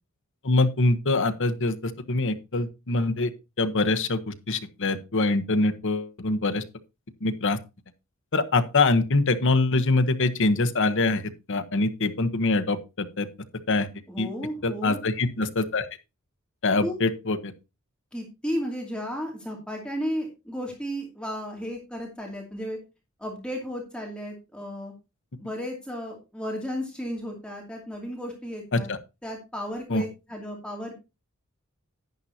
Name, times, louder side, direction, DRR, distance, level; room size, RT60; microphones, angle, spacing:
voice 1, 0.4-3.3 3.6-6.6 7.2-7.6 8.3-12.8 13.2-13.3 13.7-13.9 14.2-14.3 14.6-15.9 16.6-17.5 28.7-29.0 29.9-30.0, left 3 dB, 60° left, 9 dB, 1.0 m, -24 dB
voice 2, 14.1-15.1 16.8-16.9 18.1-22.8 23.2-24.9 25.4-28.9 29.2-30.9, equal, 5° left, -1 dB, 2.5 m, -34 dB
10.5 x 10.0 x 2.8 m, 0.27 s
head